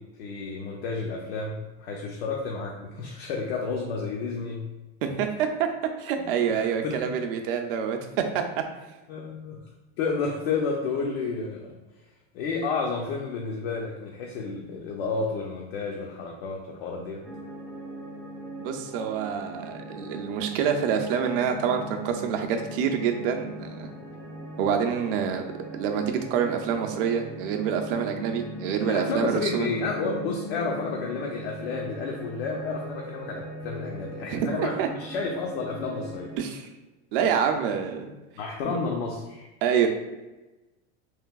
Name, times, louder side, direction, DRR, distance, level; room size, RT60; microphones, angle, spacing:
voice 1, 0.0-4.7 6.2-7.0 9.1-9.6 10.0-11.7 12.3-17.2 28.8-36.3 38.4-39.5, left 4 dB, 80° left, 0 dB, 0.6 m, -31 dB
voice 2, 5.0-5.7 6.0-8.4 18.6-23.9 24.6-25.4 25.7-29.7 34.3-34.9 36.4-36.7 37.1-38.1 38.7-38.8 39.6-39.9, right 7 dB, 60° right, 5 dB, 0.5 m, -27 dB
sound 1, 17.2-36.4, equal, 10° right, 0.3 m, -40 dB
3.2 x 2.6 x 2.3 m, 1.1 s
supercardioid pair, 160°, 31 cm